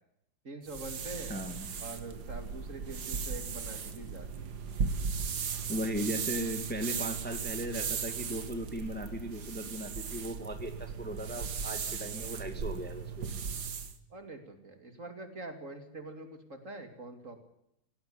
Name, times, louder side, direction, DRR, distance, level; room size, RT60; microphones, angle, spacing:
voice 1, 0.4-1.3 1.8-4.5 14.1-17.4, right 2 dB, 40° right, 7 dB, 2.8 m, -44 dB
sound 1, 0.7-14.0, right 6 dB, 55° right, 1.9 m, -37 dB
voice 2, 1.3-1.7 5.7-13.3, equal, 5° left, 6 dB, 1.9 m, -37 dB
17.5 x 17.0 x 9.7 m, 0.80 s
omnidirectional pair, 2.2 m